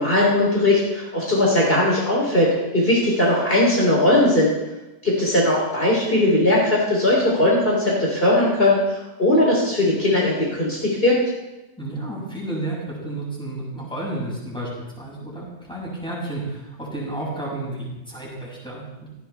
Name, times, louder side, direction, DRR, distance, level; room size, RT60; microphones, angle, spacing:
voice 1, 0.0-4.5 5.0-11.2, left 1 dB, 50° left, -4 dB, 4.0 m, -19 dB
voice 2, 11.8-14.7 15.0-19.1, right 2 dB, 5° left, -6 dB, 7.3 m, -31 dB
18.0 x 16.5 x 3.6 m, 1.0 s
omnidirectional pair, 1.3 m